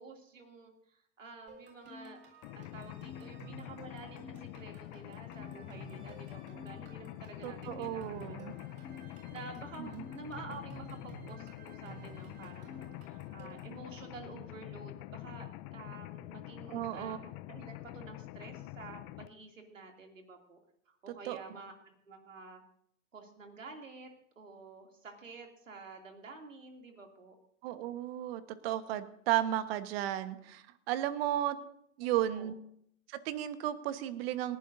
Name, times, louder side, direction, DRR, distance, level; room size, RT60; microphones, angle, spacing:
voice 1, 0.0-2.2 2.5-20.6 20.9-22.6 23.1-24.1 24.4-27.4 32.0-32.5, right 3 dB, 80° right, 3 dB, 2.9 m, -50 dB
sound 1, 1.5-13.8, right 2 dB, 30° right, 7.0 m, -53 dB
Mechanisms, 2.4-19.3, left 16 dB, 40° left, 0.7 m, -46 dB
voice 2, 7.4-8.5 9.8-10.0 16.7-17.2 21.2-21.4 27.6-31.6 32.0-32.5 33.1-34.6, right 12 dB, 50° right, 11 dB, 1.4 m, -34 dB
29.0 x 11.5 x 2.7 m, 0.70 s
hypercardioid pair, 100°, 38 cm